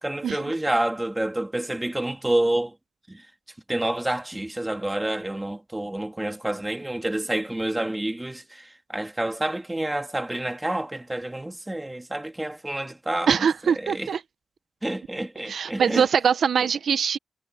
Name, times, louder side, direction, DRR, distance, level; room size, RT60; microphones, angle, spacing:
voice 1, 0.0-2.7 3.1-3.2 3.7-14.1 14.8-16.1, right 1 dB, 15° right, 2.7 m, -28 dB
voice 2, 13.3-14.2 15.5-17.2, right 7 dB, 75° right, 0.9 m, -22 dB
cardioid pair, 85°, 0 cm